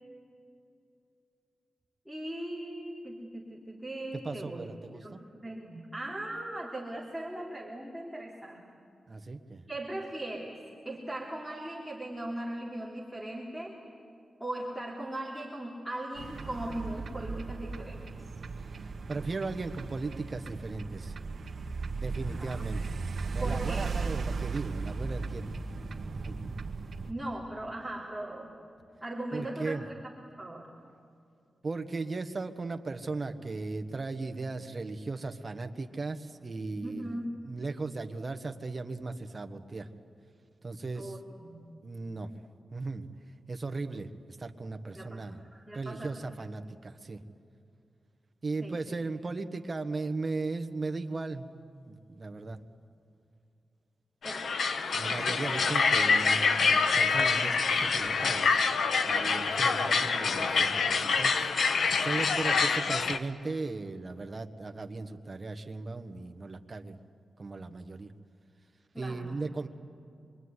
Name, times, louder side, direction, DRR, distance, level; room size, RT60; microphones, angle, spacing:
voice 1, 2.0-4.7 5.0-8.6 9.7-10.6 10.8-13.8 14.4-18.0 22.2-22.6 23.4-23.9 27.1-28.5 29.0-30.1 30.4-30.7 36.8-37.4 40.9-41.6 44.9-45.2 45.5-46.1 48.6-49.0 54.2-54.6 68.9-69.4, right 1 dB, ahead, -3 dB, 3.3 m, -39 dB
voice 2, 4.2-5.2 9.1-9.6 18.8-21.1 22.0-22.8 23.3-25.5 26.1-26.4 29.3-29.9 31.6-39.9 40.6-41.2 41.8-42.3 42.7-43.0 43.5-45.4 45.7-47.2 48.4-51.5 51.7-52.6 54.9-58.8 59.0-67.0 67.4-68.1 69.0-69.7, right 3 dB, 30° right, 6 dB, 1.4 m, -37 dB
sound 1, 16.1-27.1, right 4 dB, 55° right, 1.8 m, -36 dB
sound 2, 54.2-63.2, left 5 dB, 70° left, 1.2 m, -26 dB
26.0 x 23.5 x 9.7 m, 2.5 s
wide cardioid pair, 150°, 0 cm